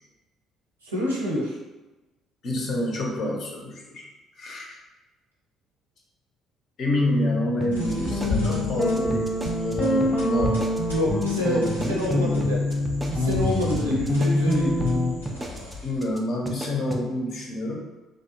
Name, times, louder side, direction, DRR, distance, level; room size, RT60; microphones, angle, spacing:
voice 1, 0.8-1.6 10.9-11.6 11.9-12.6 13.1-14.8, left 1 dB, 80° right, -5 dB, 0.5 m, -27 dB
voice 2, 2.4-4.1 4.4-4.8 6.8-9.3 9.6-10.6 11.4-12.5 15.8-17.8, left 1 dB, 50° left, -1 dB, 0.5 m, -27 dB
sound 1, 7.6-15.1, left 1 dB, ahead, 0.7 m, -25 dB
sound 2, 7.6-9.7 10.0-10.1 10.5-10.9 11.2-11.4 11.7-14.5 14.8-14.9 15.3-15.7 16.0-16.2 16.5-17.0, right 1 dB, 15° right, 0.4 m, -35 dB
sound 3, 7.7-16.1, left 2 dB, 90° left, 0.6 m, -36 dB
2.6 x 2.1 x 2.7 m, 1.1 s
figure-of-eight pair, 50°, 0 cm